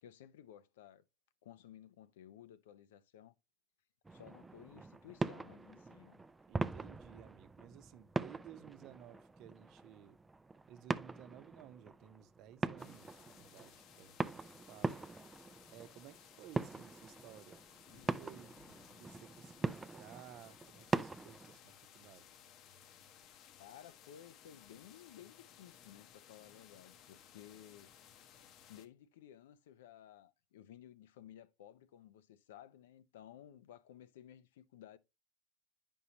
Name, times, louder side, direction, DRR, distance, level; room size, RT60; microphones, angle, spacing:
voice 1, 0.0-1.0 1.4-3.3 4.1-6.2 23.6-28.3 28.7-35.0, left 10 dB, 85° left, 0.6 m, -56 dB
sound 1, 4.0-21.6, right 3 dB, 15° right, 0.4 m, -42 dB
voice 2, 6.5-10.2 10.7-15.0 15.7-17.6 17.9-18.5 19.0-22.3, right 10 dB, 55° right, 0.8 m, -56 dB
sound 2, 12.8-28.9, left 9 dB, 50° left, 0.8 m, -60 dB
8.4 x 5.4 x 2.9 m
supercardioid pair, 115°, 0 cm